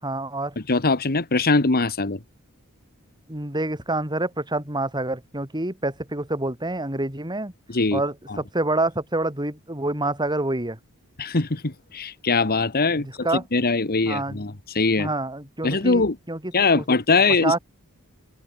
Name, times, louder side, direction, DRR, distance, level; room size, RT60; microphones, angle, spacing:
voice 1, 0.0-0.6 3.3-7.5 7.9-10.8 13.0-13.4 14.1-14.5 15.0-16.8 17.4-17.6, right 2 dB, 20° right, 5.7 m, -27 dB
voice 2, 0.7-2.2 7.7-8.0 11.2-13.1 13.5-15.1 15.6-16.1 16.5-17.6, left 3 dB, 45° left, 1.6 m, -21 dB
head